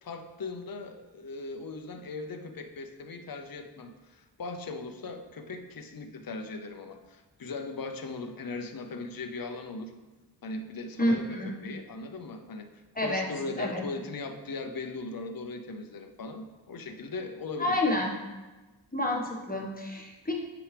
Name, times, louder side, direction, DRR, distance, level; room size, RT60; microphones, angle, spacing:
voice 1, 0.0-9.9 10.4-12.7 12.9-17.8, left 3 dB, 50° left, 6 dB, 0.7 m, -39 dB
voice 2, 11.0-11.6 13.0-13.2 13.6-13.8 17.6-18.1 18.9-20.3, left 1 dB, 20° left, -1 dB, 1.3 m, -28 dB
8.9 x 6.1 x 3.3 m, 1.2 s
wide cardioid pair, 65°, 45 cm